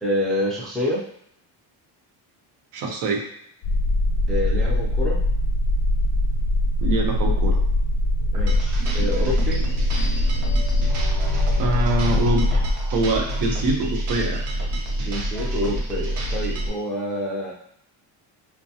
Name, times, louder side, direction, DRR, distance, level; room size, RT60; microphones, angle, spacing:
voice 1, 0.0-1.1 4.3-5.2 8.3-9.7 15.0-17.5, left 1 dB, ahead, -5 dB, 0.3 m, -27 dB
voice 2, 2.7-3.3 6.8-7.6 11.6-12.6 12.9-14.4, right 2 dB, 75° right, 1 dB, 0.9 m, -24 dB
sound 1, 3.6-12.7, left 1 dB, 75° left, 0.6 m, -22 dB
sound 2, 8.3-16.7, right 1 dB, 45° right, 0.6 m, -27 dB
4.7 x 2.2 x 2.7 m, 0.72 s
cardioid pair, 170°, 41 cm